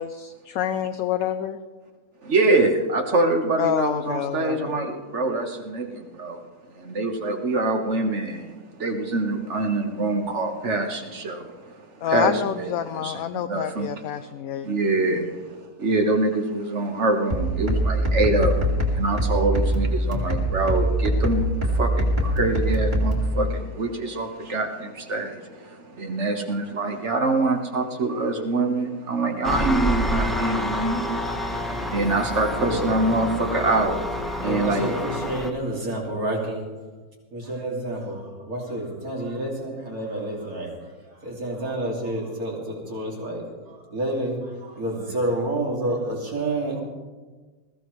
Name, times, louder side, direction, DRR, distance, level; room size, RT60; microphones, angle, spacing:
voice 1, 0.0-1.6 3.6-4.8 12.0-14.7, left 10 dB, 70° left, 9 dB, 1.0 m, -27 dB
voice 2, 2.2-6.4 6.7-11.8 12.1-14.3 14.6-34.9, right 2 dB, 50° right, 4 dB, 1.5 m, -25 dB
sound 1, 17.3-23.3, equal, 30° right, 2.5 m, -23 dB
Engine, 29.4-35.5, left 1 dB, ahead, 1.0 m, -28 dB
voice 3, 32.6-32.9 34.4-36.6 37.3-46.8, right 1 dB, 65° right, -1 dB, 3.0 m, -29 dB
20.5 x 15.0 x 3.2 m, 1.3 s
omnidirectional pair, 1.7 m